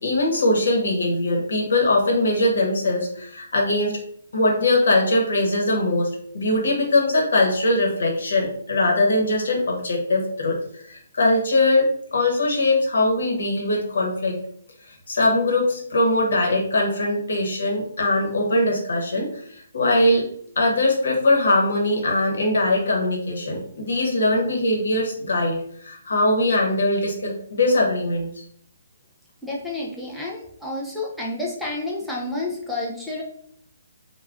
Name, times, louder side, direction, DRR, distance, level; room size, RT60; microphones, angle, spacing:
voice 1, 0.0-4.0 4.3-6.1 6.3-14.4 14.9-20.2 20.6-28.4, left 2 dB, 75° left, 0 dB, 0.9 m, -21 dB
voice 2, 29.4-33.2, left 2 dB, ahead, -5 dB, 0.4 m, -30 dB
2.4 x 2.2 x 3.4 m, 0.65 s
hypercardioid pair, 160°, 0 cm